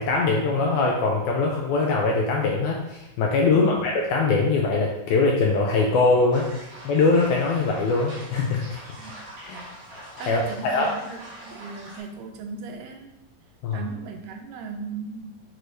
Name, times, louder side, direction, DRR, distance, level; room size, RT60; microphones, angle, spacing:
voice 1, 0.0-6.5 6.8-8.8 9.4-9.6 10.3-10.4 10.7-10.9 13.6-13.8, left 3 dB, 80° left, -1 dB, 1.8 m, -22 dB
voice 2, 3.5-3.8 9.0-9.2 10.2-13.1 13.7-15.3, right 5 dB, 85° right, 4 dB, 2.2 m, -37 dB
sound 1, 6.3-12.0, right 1 dB, 55° right, 1.4 m, -43 dB
6.1 x 2.7 x 3.1 m, 0.87 s
omnidirectional pair, 3.8 m